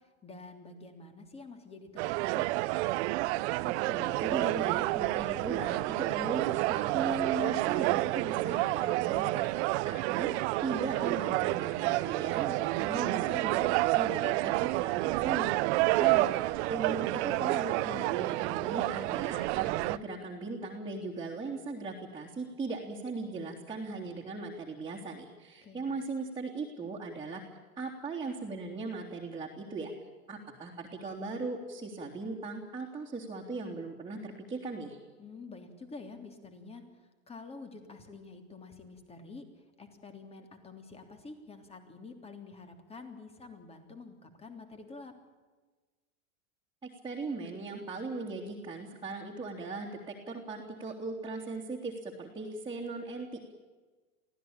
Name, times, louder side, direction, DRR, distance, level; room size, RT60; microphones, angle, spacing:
voice 1, 0.2-2.5 15.7-16.4 25.6-26.0 35.2-39.5 39.8-45.1, left 3 dB, 15° left, 7 dB, 3.3 m, -48 dB
sound 1, 2.0-20.0, right 20 dB, 55° right, 0.8 m, -29 dB
voice 2, 3.6-10.3 10.6-15.7 16.0-27.4 27.8-29.9 30.3-35.0 46.8-53.5, right 3 dB, 10° right, -4 dB, 3.2 m, -38 dB
24.5 x 16.5 x 8.9 m, 1.3 s
supercardioid pair, 140°, 42 cm